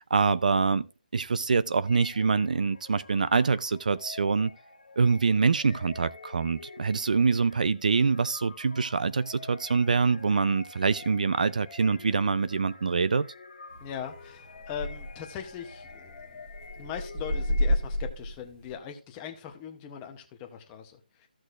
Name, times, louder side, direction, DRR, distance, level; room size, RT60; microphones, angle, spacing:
voice 1, 0.1-0.9 1.1-4.5 5.0-13.3, right 4 dB, 55° right, 0.5 m, -25 dB
sound 1, 1.9-18.1, left 4 dB, 50° left, 1.7 m, -48 dB
sound 2, 13.7-18.8, equal, 20° right, 1.8 m, -32 dB
voice 2, 13.8-16.4 16.8-21.3, left 8 dB, 10° left, 0.8 m, -40 dB
15.0 x 6.3 x 2.5 m
hypercardioid pair, 170°, 5 cm